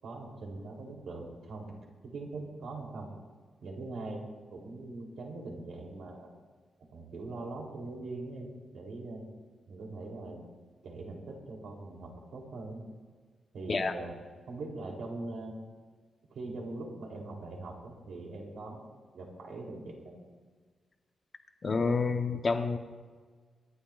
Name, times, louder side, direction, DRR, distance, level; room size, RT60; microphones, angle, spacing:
voice 1, 0.0-1.7 2.0-3.1 3.6-4.2 4.5-6.3 6.9-9.2 9.7-10.5 10.8-12.8 13.5-14.2 14.5-15.5 16.3-20.2, right 2 dB, 80° right, 0 dB, 3.5 m, -42 dB
voice 2, 21.6-22.8, left 4 dB, 35° left, 5 dB, 1.1 m, -28 dB
26.0 x 11.5 x 2.5 m, 1.5 s
wide cardioid pair, 145°, 0 cm